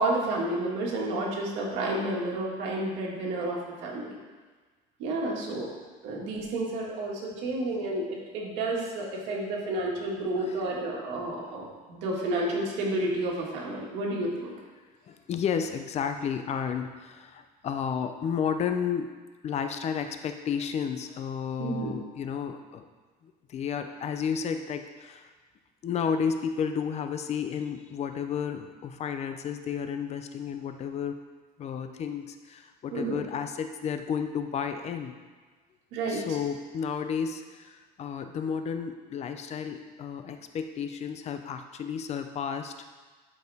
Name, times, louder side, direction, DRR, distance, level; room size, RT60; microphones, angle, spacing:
voice 1, 0.0-4.2 5.0-5.7 6.0-14.5 21.6-21.9 32.9-33.2 35.9-36.2, right 2 dB, 80° right, -3 dB, 2.0 m, -30 dB
voice 2, 15.1-19.1 19.4-22.9 23.2-25.3 25.8-31.2 31.6-35.2 36.1-42.7, left 7 dB, 40° left, 7 dB, 0.6 m, -32 dB
11.5 x 4.8 x 3.5 m, 1.3 s
cardioid pair, 135°, 18 cm